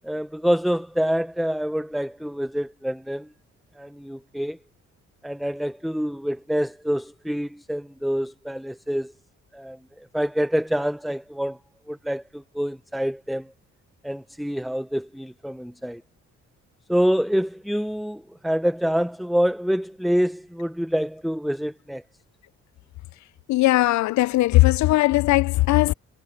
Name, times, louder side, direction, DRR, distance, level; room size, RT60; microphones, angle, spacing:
voice 1, 0.0-3.3 3.8-4.6 5.2-9.1 9.5-11.6 11.9-13.5 14.0-16.0 16.9-22.0, equal, ahead, 0.9 m, -26 dB
voice 2, 23.5-25.9, left 18 dB, 70° left, 0.5 m, -19 dB
cardioid pair, 90°, 30 cm